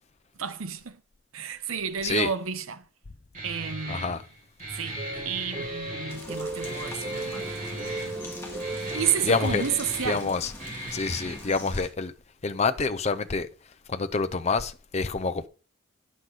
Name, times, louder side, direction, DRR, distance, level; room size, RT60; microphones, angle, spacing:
voice 1, 0.4-1.0 1.3-2.8 3.4-4.2 4.7-5.0 5.2-7.6 8.9-10.3, right 7 dB, 85° right, 0.8 m, -31 dB
Guitar, 3.3-11.3, right 1 dB, 35° right, 4.3 m, -38 dB
voice 2, 3.9-4.2 9.3-9.6 10.1-10.5 10.9-12.1 12.4-13.5 13.9-15.5, left 4 dB, 30° left, 0.5 m, -27 dB
sound 1, 5.0-10.1, right 2 dB, 20° right, 1.7 m, -36 dB
sound 2, 6.1-11.9, left 1 dB, 10° left, 2.0 m, -43 dB
9.6 x 6.2 x 4.0 m
head